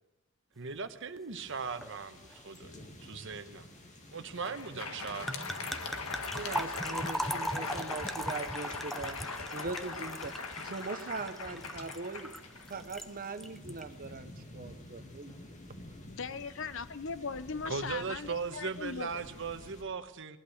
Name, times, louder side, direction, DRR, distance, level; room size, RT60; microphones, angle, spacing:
voice 1, 0.6-3.7 4.1-5.5 17.6-20.4, right 5 dB, 65° right, 9 dB, 1.1 m, -38 dB
sound 1, 1.3-19.8, left 1 dB, 35° left, 2.3 m, -52 dB
sound 2, 1.8-2.0 2.2-2.6 5.3-13.1 13.4-13.8, equal, ahead, 0.7 m, -39 dB
Crowd, 4.2-13.2, left 4 dB, 90° left, 1.6 m, -41 dB
voice 2, 6.3-9.2 9.5-10.3 10.6-12.3 12.7-15.3, right 3 dB, 45° right, 10 dB, 0.9 m, -40 dB
voice 3, 16.1-19.2, left 5 dB, 65° left, 14 dB, 0.8 m, -39 dB
19.5 x 11.5 x 6.5 m, 0.93 s
head